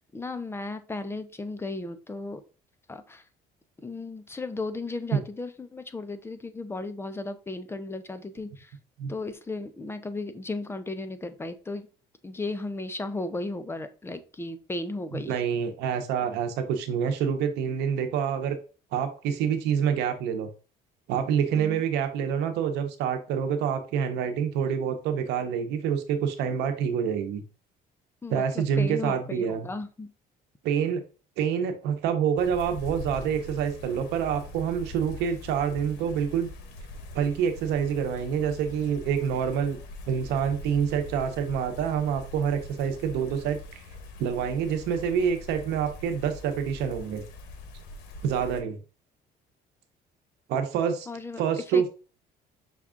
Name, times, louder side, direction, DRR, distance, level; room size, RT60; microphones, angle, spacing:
voice 1, 0.1-2.4 2.9-3.2 3.8-8.7 9.1-11.9 12.2-15.3 21.5-21.8 28.2-30.1 51.1-51.4 51.7-51.9, left 2 dB, 15° left, 10 dB, 0.5 m, -35 dB
voice 2, 15.1-18.6 18.9-20.5 21.1-27.4 28.3-29.7 30.6-31.0 31.4-36.5 37.1-39.8 40.1-43.8 44.2-47.2 48.2-48.8 50.5-51.1 51.4-51.9, right 7 dB, 90° right, 7 dB, 0.8 m, -27 dB
sound 1, 32.4-48.6, left 2 dB, 85° left, 0.8 m, -43 dB
5.8 x 2.4 x 3.5 m, 0.36 s
cardioid pair, 110°, 17 cm